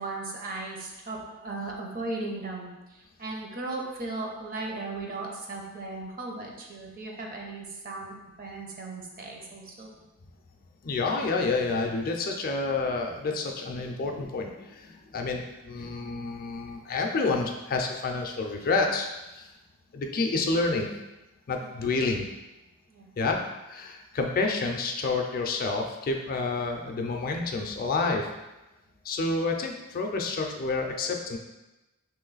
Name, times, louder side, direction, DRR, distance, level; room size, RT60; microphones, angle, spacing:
voice 1, 0.0-9.9 21.6-21.9 22.9-23.1, right 2 dB, 40° right, 0 dB, 0.7 m, -37 dB
voice 2, 10.8-19.5 19.9-20.9 21.5-22.3 23.2-28.3 29.0-31.4, left 3 dB, 40° left, 2 dB, 0.4 m, -29 dB
3.1 x 3.0 x 3.9 m, 1.0 s
head